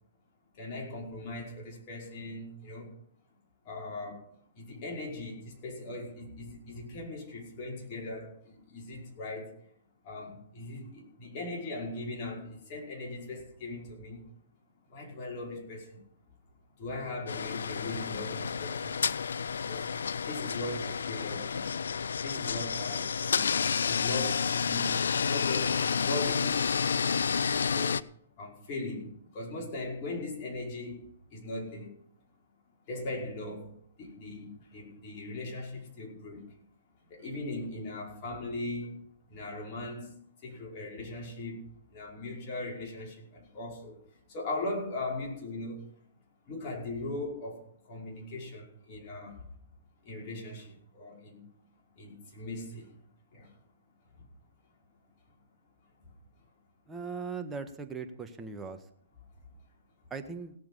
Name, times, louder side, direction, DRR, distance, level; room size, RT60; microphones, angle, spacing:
voice 1, 0.5-3.0 3.6-4.3 4.5-9.6 10.0-14.2 14.9-16.0 16.8-19.2 19.6-19.9 20.3-25.0 25.2-27.2 27.7-28.0 28.3-31.0 31.3-32.0 32.9-33.7 34.0-36.6 37.1-41.6 41.9-45.9 46.5-49.5 50.0-51.5 52.0-52.9 53.3-53.5 54.1-54.2 56.0-56.1, left 2 dB, 40° left, -1 dB, 5.3 m, -39 dB
sound 1, 17.3-28.0, left 6 dB, 80° left, 0.5 m, -30 dB
voice 2, 56.9-58.8 60.1-60.5, right 5 dB, 15° right, 5 dB, 1.4 m, -39 dB
17.5 x 7.6 x 5.6 m, 0.63 s
hypercardioid pair, 130°, 0 cm